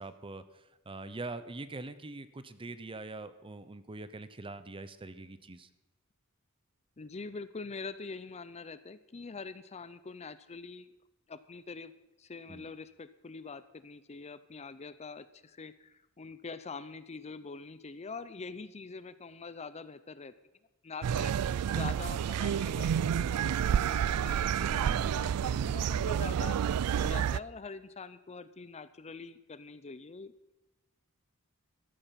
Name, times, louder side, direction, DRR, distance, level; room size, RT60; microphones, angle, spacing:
voice 1, 0.0-5.7 12.5-12.7 24.7-25.1, right 2 dB, 25° right, 13 dB, 0.7 m, -43 dB
voice 2, 7.0-10.9 11.3-11.9 12.2-20.3 20.8-26.6 27.0-30.3, left 4 dB, 30° left, 14 dB, 0.6 m, -44 dB
sound 1, 21.0-27.4, right 8 dB, 85° right, 0.4 m, -29 dB
13.5 x 12.0 x 5.8 m, 1.0 s
head